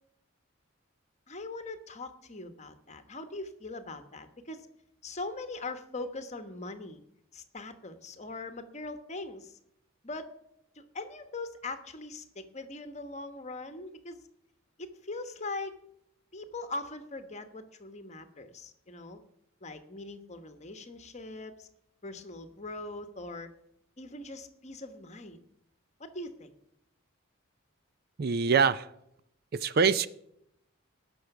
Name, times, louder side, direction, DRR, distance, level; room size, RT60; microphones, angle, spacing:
voice 1, 1.3-4.7 5.0-7.0 7.3-9.6 10.0-10.3 10.7-14.2 14.8-15.8 16.3-19.2 19.6-21.7 22.0-23.5 24.0-25.4 26.0-26.5, left 2 dB, 35° left, 9 dB, 1.1 m, -41 dB
voice 2, 28.2-28.9 29.5-30.1, right 5 dB, 45° right, 15 dB, 0.4 m, -24 dB
19.0 x 6.4 x 5.9 m, 0.78 s
head